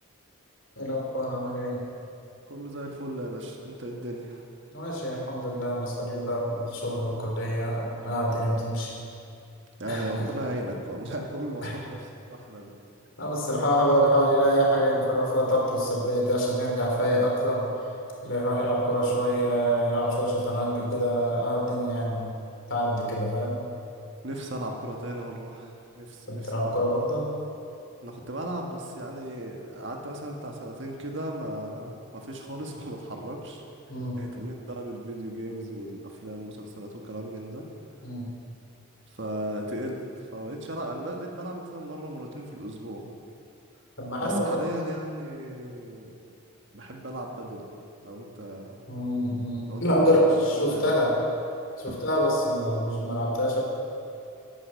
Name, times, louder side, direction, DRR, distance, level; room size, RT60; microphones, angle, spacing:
voice 1, 0.8-1.8 4.7-8.9 9.9-10.0 11.6-11.7 13.2-17.7 18.2-22.3 22.7-23.6 26.3-27.3 33.9-34.2 38.0-38.3 44.0-44.6 48.9-51.1 51.8-53.6, equal, 60° left, -2 dB, 3.6 m, -25 dB
voice 2, 2.5-4.4 9.8-12.7 24.2-26.8 28.0-33.6 34.2-37.6 39.1-40.0 40.3-43.0 44.2-46.2 46.7-47.7 48.0-48.8 49.7-50.1 50.5-50.9 51.9-52.0, right 1 dB, 55° right, 1 dB, 1.7 m, -36 dB
11.5 x 10.5 x 7.7 m, 2.5 s
head